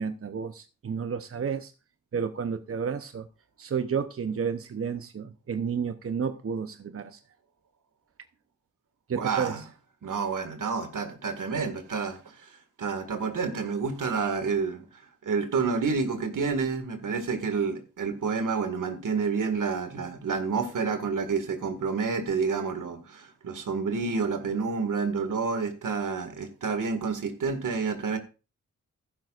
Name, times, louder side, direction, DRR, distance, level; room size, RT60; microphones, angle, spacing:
voice 1, 0.0-1.7 2.1-3.2 3.6-7.2 9.1-9.6, right 6 dB, 45° right, 0.8 m, -31 dB
voice 2, 9.1-9.6 10.0-28.2, right 5 dB, 75° right, 2.0 m, -29 dB
14.5 x 12.0 x 2.5 m
cardioid pair, 80°, 31 cm